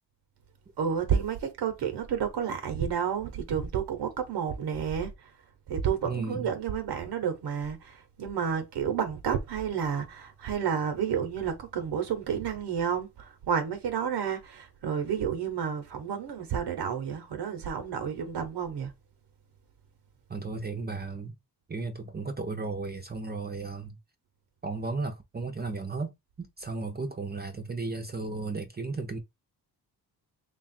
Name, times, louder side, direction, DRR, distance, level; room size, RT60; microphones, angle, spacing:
voice 1, 0.8-5.3 5.7-18.9, right 7 dB, 80° right, 0.9 m, -30 dB
voice 2, 6.0-6.5 20.3-21.3 21.7-24.0 24.6-26.1 26.4-29.2, right 3 dB, 25° right, 0.6 m, -34 dB
3.3 x 2.4 x 4.1 m
cardioid pair, 100°, 40 cm